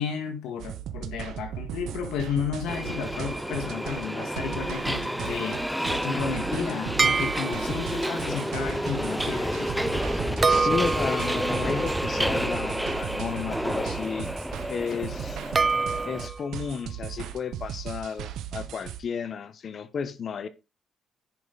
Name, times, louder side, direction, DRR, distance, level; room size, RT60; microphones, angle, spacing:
voice 1, 0.0-5.8 6.0-10.6, left 7 dB, 90° left, 1.8 m, -33 dB
sound 1, 0.6-19.0, right 10 dB, 85° right, 1.0 m, -37 dB
Subway metro underground, 2.7-16.3, equal, ahead, 0.8 m, -30 dB
sound 2, 7.0-8.0 10.4-13.5 15.6-16.5, right 4 dB, 35° right, 0.4 m, -27 dB
voice 2, 10.5-14.4 14.7-15.4 15.9-20.5, left 6 dB, 55° left, 1.1 m, -33 dB
10.5 x 5.3 x 4.0 m
cardioid pair, 90°, 0 cm